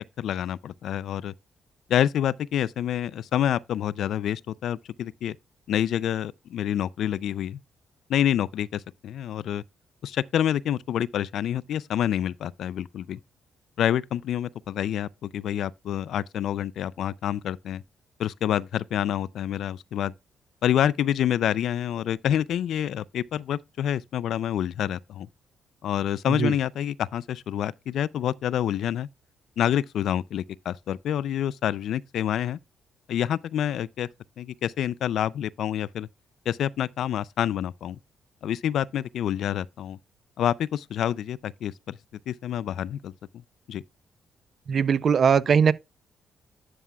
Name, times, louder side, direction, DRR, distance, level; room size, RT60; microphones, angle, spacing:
voice 1, 0.2-1.3 1.9-5.4 5.7-7.6 8.1-9.6 10.0-13.2 13.8-17.8 18.2-20.1 20.6-25.3 25.8-29.1 29.6-32.6 33.1-34.1 34.4-36.1 36.5-38.0 38.4-40.0 40.4-42.0 42.3-43.1 43.7-43.8, left 10 dB, 75° left, 0.3 m, -27 dB
voice 2, 44.7-45.7, right 6 dB, 50° right, 0.5 m, -20 dB
11.0 x 7.0 x 2.3 m
cardioid pair, 95°, 0 cm